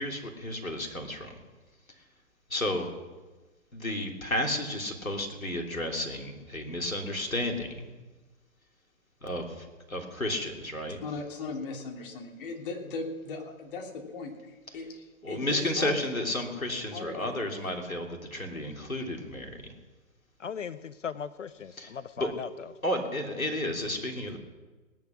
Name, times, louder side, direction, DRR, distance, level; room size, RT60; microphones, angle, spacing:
voice 1, 0.0-1.4 2.5-2.9 3.7-7.9 9.2-11.0 15.2-19.6 21.8-22.3 22.8-24.4, left 1 dB, 80° left, 3 dB, 3.4 m, -32 dB
voice 2, 11.0-16.0 16.9-17.4, left 3 dB, 40° left, 0 dB, 3.2 m, -38 dB
voice 3, 20.4-22.7, left 7 dB, 60° left, 14 dB, 0.7 m, -38 dB
18.5 x 11.0 x 6.1 m, 1.2 s
figure-of-eight pair, 125°, 41 cm